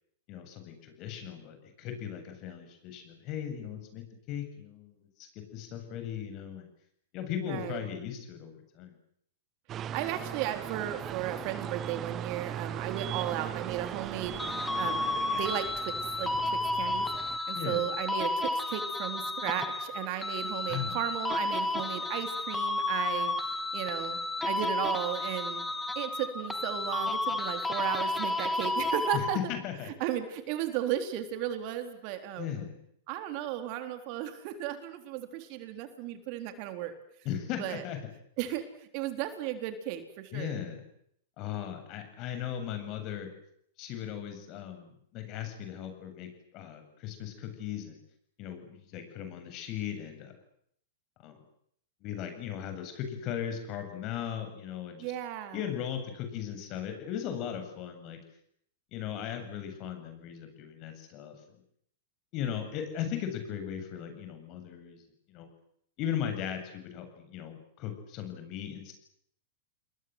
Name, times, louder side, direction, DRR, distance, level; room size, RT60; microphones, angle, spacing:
voice 1, 0.3-6.7 7.1-8.9 17.5-17.8 20.7-21.0 29.1-29.9 32.4-32.7 37.2-38.0 40.3-40.8 41.4-43.3 43.8-48.0 48.4-50.4 51.2-51.4 52.0-55.1 55.5-58.2 58.9-61.4 62.3-65.0 65.3-65.5 66.0-68.9, left 9 dB, 45° left, 7 dB, 7.9 m, -37 dB
voice 2, 7.5-7.9 9.9-24.2 24.4-25.7 26.0-29.4 30.0-32.6 33.1-36.9 37.6-37.8 38.4-40.6 55.0-55.6, right 11 dB, 50° right, 8 dB, 3.9 m, -35 dB
sound 1, 9.7-17.4, right 10 dB, 30° right, 1.1 m, -38 dB
sound 2, 14.4-29.6, left 2 dB, 10° left, 2.7 m, -32 dB
30.0 x 21.5 x 8.0 m, 0.69 s
hypercardioid pair, 115°, 0 cm